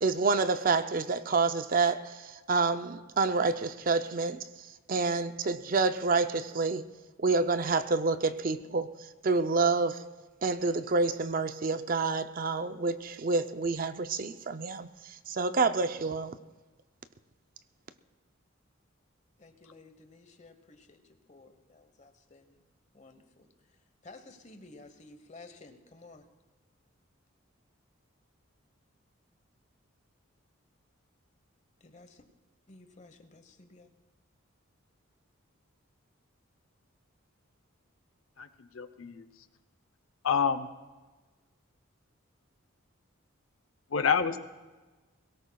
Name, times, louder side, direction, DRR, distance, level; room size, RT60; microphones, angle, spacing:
voice 1, 0.0-4.4 4.9-6.9 7.2-8.9 9.2-10.0 10.4-16.4, right 4 dB, 40° right, 10 dB, 0.5 m, -28 dB
voice 2, 19.4-21.0 21.3-22.6 22.9-23.5 24.0-26.2 31.8-32.2 32.7-33.9, left 3 dB, 35° left, 7 dB, 1.1 m, -53 dB
voice 3, 38.4-39.2 40.2-40.7 43.9-44.4, left 6 dB, 75° left, 10 dB, 0.7 m, -28 dB
22.5 x 17.5 x 2.3 m, 1.2 s
head